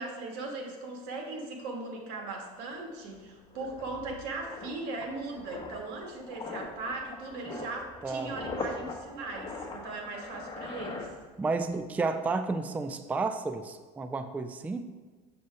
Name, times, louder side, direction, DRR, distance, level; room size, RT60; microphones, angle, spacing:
voice 1, 0.0-11.1, right 3 dB, 80° right, 2 dB, 1.5 m, -38 dB
sound 1, 2.3-2.4 2.6-11.7 12.0-12.2, left 3 dB, 25° left, 1.1 m, -42 dB
voice 2, 11.4-14.9, right 3 dB, 10° right, 9 dB, 0.3 m, -32 dB
6.9 x 6.5 x 3.4 m, 1.4 s
supercardioid pair, 110°, 18 cm